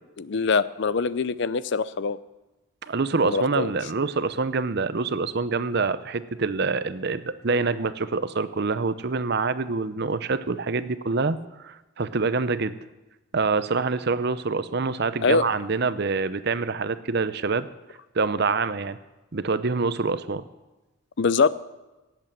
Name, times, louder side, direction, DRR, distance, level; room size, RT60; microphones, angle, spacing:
voice 1, 0.2-2.2 3.2-3.7 15.2-15.4 21.2-21.5, left 4 dB, 55° left, 17 dB, 0.5 m, -23 dB
voice 2, 2.8-11.4 11.6-12.8 13.3-17.7 18.1-19.0 19.3-20.4, right 4 dB, 50° right, 14 dB, 0.7 m, -26 dB
17.5 x 8.1 x 7.5 m, 1.1 s
head